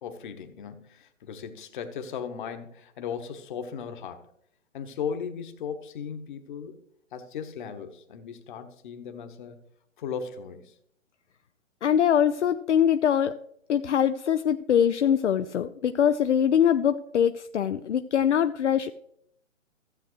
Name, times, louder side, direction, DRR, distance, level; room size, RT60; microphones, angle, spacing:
voice 1, 0.0-4.3 4.7-6.7 7.1-9.6 10.0-10.7, left 7 dB, 40° left, 1.3 m, -37 dB
voice 2, 11.8-13.4 13.7-18.9, left 9 dB, 65° left, 0.6 m, -23 dB
15.0 x 7.6 x 3.1 m
figure-of-eight pair, 130°, 38 cm